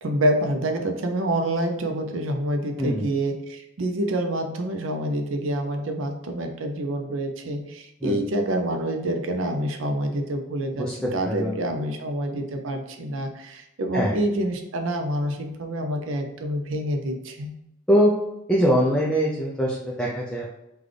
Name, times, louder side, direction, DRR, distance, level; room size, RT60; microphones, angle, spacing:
voice 1, 0.0-10.9 11.1-17.5, right 1 dB, 85° right, 5 dB, 0.5 m, -27 dB
voice 2, 2.8-3.1 8.0-8.2 10.8-11.6 13.9-14.2 17.9-18.1 18.5-20.5, equal, 5° left, -4 dB, 0.4 m, -23 dB
3.8 x 2.3 x 3.2 m, 0.85 s
head